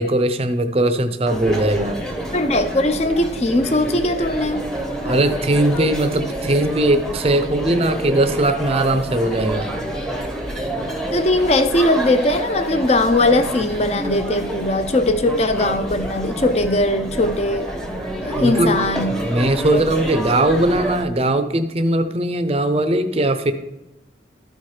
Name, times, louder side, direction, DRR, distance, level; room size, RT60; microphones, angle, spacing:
voice 1, 0.0-2.0 5.0-9.7 18.4-18.8 19.2-23.5, right 1 dB, 30° right, 9 dB, 0.6 m, -19 dB
sound 1, 1.3-21.0, right 1 dB, 5° left, 0.8 m, -28 dB
voice 2, 2.3-4.7 11.1-17.7 18.2-19.3 19.7-19.8, left 1 dB, 35° left, 9 dB, 0.6 m, -19 dB
13.0 x 4.4 x 4.8 m, 0.99 s
head